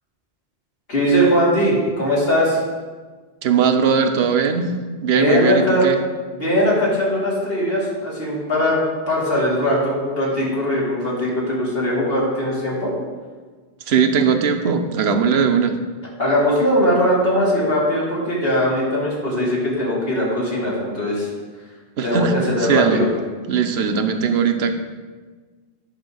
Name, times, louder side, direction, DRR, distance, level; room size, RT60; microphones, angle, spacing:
voice 1, 0.9-2.6 5.1-5.9 6.3-8.8 9.1-12.9 16.2-21.3 22.0-23.1, equal, 70° left, -6 dB, 2.9 m, -20 dB
voice 2, 3.4-4.7 5.0-6.0 13.9-15.7 22.0-22.3 22.6-23.0 23.5-24.7, right 6 dB, 80° right, 7 dB, 1.0 m, -19 dB
10.5 x 4.1 x 6.3 m, 1.4 s
omnidirectional pair, 1.1 m